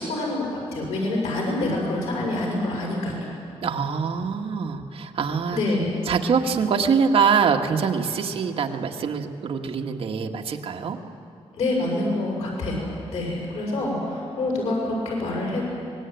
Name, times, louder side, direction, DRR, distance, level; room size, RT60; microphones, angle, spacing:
voice 1, 0.0-3.3 5.5-5.9 11.5-15.6, left 2 dB, 90° left, -2 dB, 6.6 m, -26 dB
voice 2, 3.6-5.6 6.0-11.0, right 6 dB, 60° right, 2 dB, 1.7 m, -24 dB
24.0 x 20.0 x 9.2 m, 2.6 s
wide cardioid pair, 155°, 11 cm